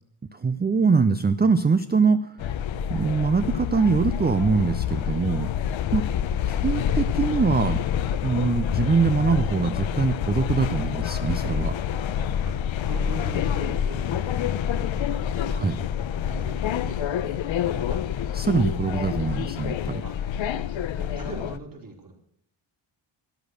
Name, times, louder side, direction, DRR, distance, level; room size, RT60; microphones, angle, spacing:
voice 1, 0.3-2.3 2.9-5.5 5.9-6.0 6.5-7.8 8.2-11.7 15.5-15.8 18.3-20.0, right 5 dB, 20° right, 10 dB, 0.5 m, -23 dB
sound 1, 2.4-21.6, left 9 dB, 65° left, 0.8 m, -27 dB
voice 2, 12.8-14.4 15.2-18.0 20.0-20.1 20.4-22.1, right 3 dB, 40° right, 0 dB, 4.0 m, -42 dB
13.5 x 11.5 x 6.5 m, 0.71 s
wide cardioid pair, 150°, 50 cm